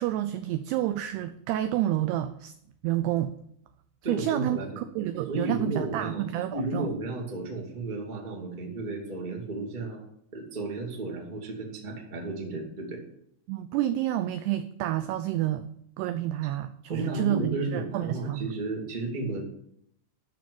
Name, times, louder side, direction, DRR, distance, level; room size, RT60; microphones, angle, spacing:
voice 1, 0.0-2.5 2.8-3.3 4.1-6.9 13.5-15.7 16.0-18.5, right 13 dB, 85° right, 11 dB, 2.3 m, -29 dB
voice 2, 4.0-4.8 5.3-6.2 6.5-10.0 10.3-13.0 16.9-19.4, right 2 dB, 20° right, -1 dB, 1.1 m, -33 dB
13.0 x 5.1 x 8.4 m, 0.71 s
omnidirectional pair, 5.3 m